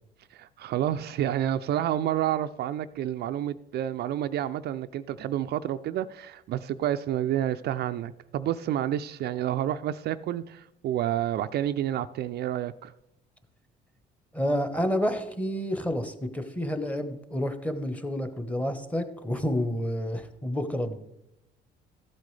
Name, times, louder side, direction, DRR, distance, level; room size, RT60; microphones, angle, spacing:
voice 1, 0.3-12.9, right 11 dB, 55° right, 0.4 m, -29 dB
voice 2, 14.3-21.0, equal, 5° left, 1.1 m, -29 dB
14.0 x 8.2 x 3.3 m
supercardioid pair, 90°, 19 cm